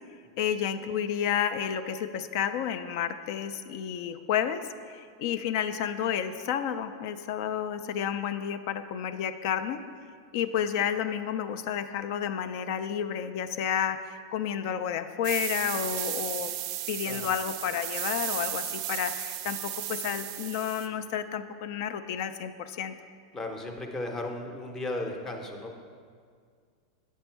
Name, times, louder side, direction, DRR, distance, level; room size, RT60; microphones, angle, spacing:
voice 1, 0.4-9.8 10.3-16.6 16.9-23.0, left 9 dB, 50° left, 10 dB, 0.3 m, -31 dB
sound 1, 15.2-20.9, right 12 dB, 40° right, 0.4 m, -34 dB
voice 2, 23.3-25.8, left 2 dB, 15° left, 3 dB, 0.7 m, -35 dB
8.0 x 5.2 x 4.5 m, 2.1 s
supercardioid pair, 155°, 3 cm